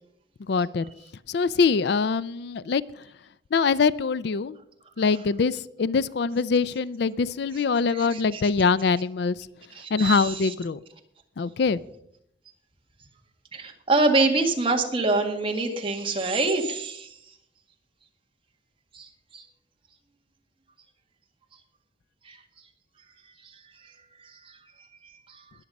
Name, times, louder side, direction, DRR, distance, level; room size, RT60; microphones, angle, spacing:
voice 1, 0.5-0.9 1.3-2.8 3.5-4.6 5.0-9.4 9.9-10.8 11.4-11.8, left 5 dB, 60° left, 18 dB, 0.4 m, -23 dB
voice 2, 7.9-8.4 9.8-10.5 13.5-17.1 18.9-19.1 19.3-19.4 22.3-22.4 25.3-25.4, right 3 dB, 30° right, 3 dB, 1.7 m, -25 dB
20.5 x 7.2 x 5.3 m, 0.73 s
head